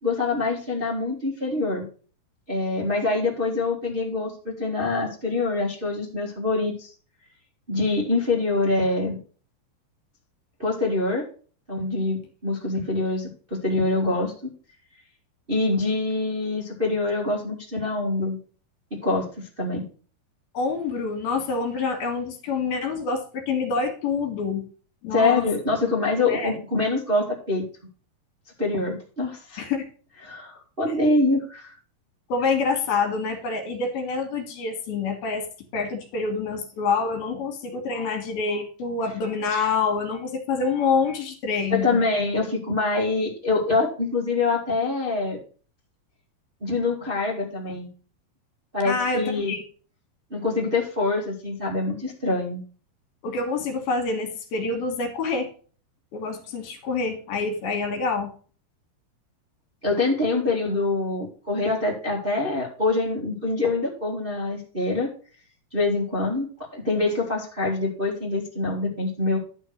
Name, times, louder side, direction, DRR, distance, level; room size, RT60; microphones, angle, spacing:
voice 1, 0.0-1.9 2.5-6.9 7.7-9.2 10.6-11.3 11.7-14.5 15.5-18.4 18.9-19.3 19.6-19.8 25.1-27.6 28.6-29.6 30.2-31.7 41.7-45.4 46.6-47.9 48.7-49.5 50.3-52.6 59.8-65.1 65.7-69.4, left 3 dB, 20° right, -3 dB, 1.4 m, -25 dB
voice 2, 20.5-24.6 25.0-25.4 26.3-26.5 29.6-29.9 32.3-35.5 35.7-42.0 48.9-49.6 53.2-55.5 56.1-58.3, left 4 dB, 70° left, 5 dB, 3.4 m, -26 dB
11.5 x 4.5 x 6.1 m, 0.41 s
omnidirectional pair, 4.7 m